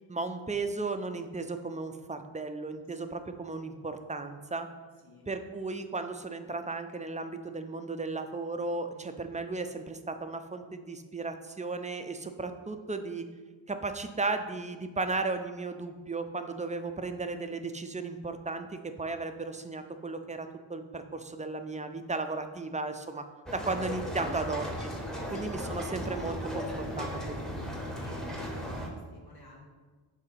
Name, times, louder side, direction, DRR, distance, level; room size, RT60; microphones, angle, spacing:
voice 1, 0.1-4.7 5.3-13.2 13.7-23.3 23.5-24.9 25.3-27.7, right 3 dB, 15° right, 8 dB, 0.4 m, -35 dB
sound 1, 23.5-28.9, equal, ahead, 0.9 m, -36 dB
voice 2, 23.7-24.1 25.2-26.1 28.0-29.6, left 2 dB, 50° left, -4 dB, 1.9 m, -54 dB
7.6 x 2.7 x 5.6 m, 1.4 s
wide cardioid pair, 100°, 48 cm